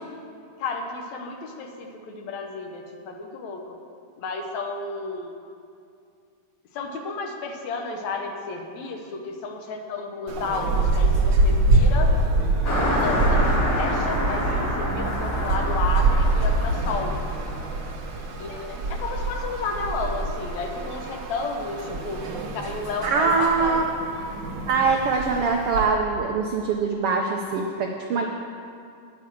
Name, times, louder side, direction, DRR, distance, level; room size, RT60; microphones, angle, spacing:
voice 1, 0.6-3.8 4.2-5.3 6.7-12.1 12.9-17.1 18.4-22.2 22.5-23.9, left 4 dB, 70° left, 3 dB, 2.2 m, -32 dB
sound 1, 10.3-25.8, right 2 dB, 65° right, 1.1 m, -25 dB
Car passing by, 12.6-18.5, equal, 45° left, 3.5 m, -28 dB
voice 2, 23.0-23.8 24.7-28.3, right 4 dB, 85° right, 2 dB, 1.2 m, -23 dB
9.9 x 9.7 x 6.9 m, 2.4 s
omnidirectional pair, 3.6 m